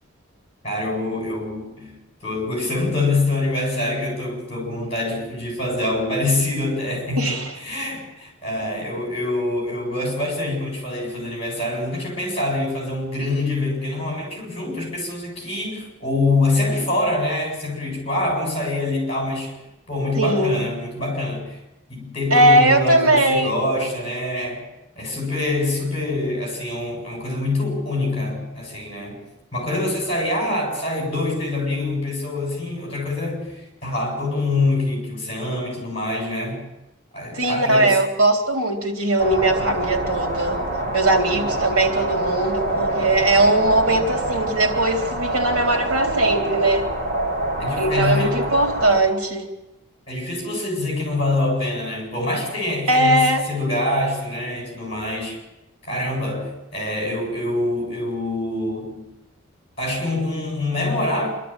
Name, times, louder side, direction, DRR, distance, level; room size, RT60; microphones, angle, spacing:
voice 1, 0.6-1.9 2.2-19.6 19.9-21.6 21.9-24.6 25.0-29.2 29.5-36.6 37.1-37.9 47.6-48.4 50.1-55.4 55.8-59.1 59.8-61.3, left 2 dB, 30° left, 7.7 m, -25 dB
voice 2, 7.2-7.5 20.2-20.6 22.3-23.5 30.4-30.6 37.3-40.6 40.9-46.9 47.8-49.5 52.9-53.4, right 1 dB, 85° right, 3.6 m, -19 dB
sound 1, 39.2-49.0, right 1 dB, 40° right, 3.6 m, -26 dB
26.0 x 13.0 x 9.1 m
head